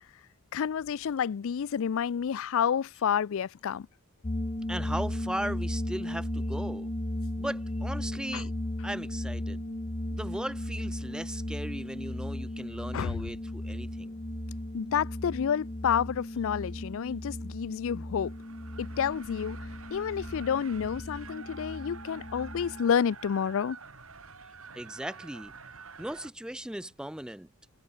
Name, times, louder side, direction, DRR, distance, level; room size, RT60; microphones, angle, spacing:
voice 1, 0.5-3.9 8.3-8.4 12.9-13.2 14.7-18.3 18.8-19.6 19.9-23.8, left 7 dB, 65° left, 0.4 m, -29 dB
sound 1, 4.2-22.9, left 1 dB, 30° left, 1.4 m, -36 dB
voice 2, 4.7-6.9 7.4-8.5 8.8-9.6 10.1-14.1 24.7-25.5 26.0-27.5, right 1 dB, 5° right, 0.5 m, -37 dB
sound 2, 18.2-26.3, right 4 dB, 70° right, 5.4 m, -48 dB
head